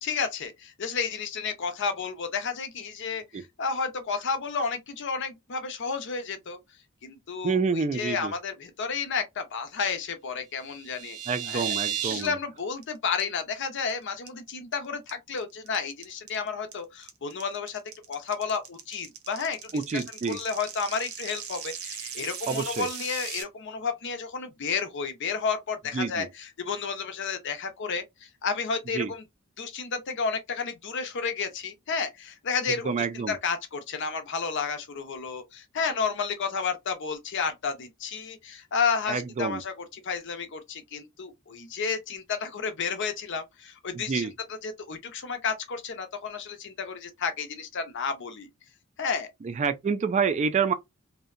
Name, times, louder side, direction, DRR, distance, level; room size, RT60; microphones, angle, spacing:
voice 1, 0.0-6.6 7.0-11.2 11.5-11.8 12.1-17.8 18.1-29.2 29.6-32.9 33.1-44.3 44.6-48.5 49.0-49.3, left 5 dB, 55° left, 0.6 m, -31 dB
voice 2, 7.4-8.3 11.3-12.4 19.7-20.4 22.5-22.9 25.9-26.3 28.9-29.1 32.7-33.4 39.1-39.6 43.9-44.3 49.4-50.7, right 5 dB, 35° right, 0.3 m, -28 dB
sound 1, 10.6-12.3 12.6-12.8 13.2-13.3 13.6-13.9 14.3-14.7 15.1-23.4, right 9 dB, 90° right, 0.7 m, -36 dB
2.7 x 2.1 x 2.4 m
head